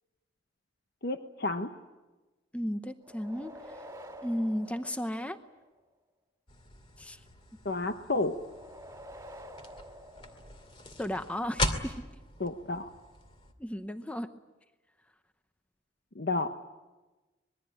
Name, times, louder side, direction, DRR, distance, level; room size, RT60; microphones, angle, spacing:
voice 1, 1.0-1.7 7.6-8.3 12.4-12.9 16.2-16.5, left 2 dB, 55° left, 7 dB, 1.1 m, -31 dB
voice 2, 2.5-3.8 4.2-5.4 7.0-7.2 11.0-12.0 13.6-14.3, equal, 5° left, 9 dB, 0.8 m, -34 dB
sound 1, 3.0-5.8 8.4-11.1, equal, 15° right, 2.7 m, -49 dB
sound 2, 6.5-13.5, left 1 dB, 25° left, 2.3 m, -39 dB
26.0 x 21.0 x 8.9 m, 1.2 s
head